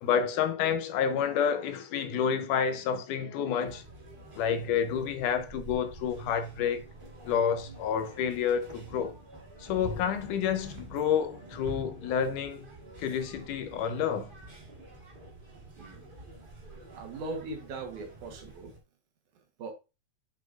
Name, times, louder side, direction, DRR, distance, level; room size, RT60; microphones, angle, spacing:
voice 1, 0.0-3.8 4.4-6.9 7.3-9.2 9.6-12.7 13.0-14.3, left 7 dB, 80° left, 2.3 m, -29 dB
sound 1, 3.6-18.8, right 2 dB, 25° right, 1.0 m, -47 dB
voice 2, 16.9-18.7 19.6-19.7, right 3 dB, 70° right, 2.7 m, -39 dB
7.5 x 6.1 x 2.5 m
omnidirectional pair, 3.7 m